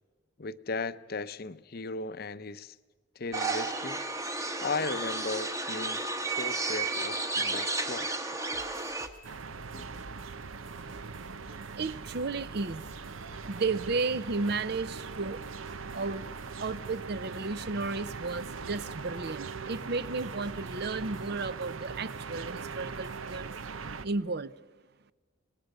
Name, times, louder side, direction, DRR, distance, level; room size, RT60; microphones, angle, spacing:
voice 1, 0.4-2.8 3.2-4.1 4.6-8.1 9.7-9.8, left 3 dB, 50° left, 14 dB, 0.6 m, -36 dB
sound 1, 3.3-9.1, right 3 dB, 15° right, 1.1 m, -32 dB
sound 2, 8.5-23.8, right 1 dB, 70° right, 1.7 m, -55 dB
sound 3, 9.2-24.1, right 5 dB, 85° right, 0.8 m, -41 dB
voice 2, 11.2-15.4 15.9-16.3 16.6-23.5 24.0-24.5, right 3 dB, 50° right, 16 dB, 0.6 m, -34 dB
26.0 x 19.5 x 6.6 m, 1.3 s
head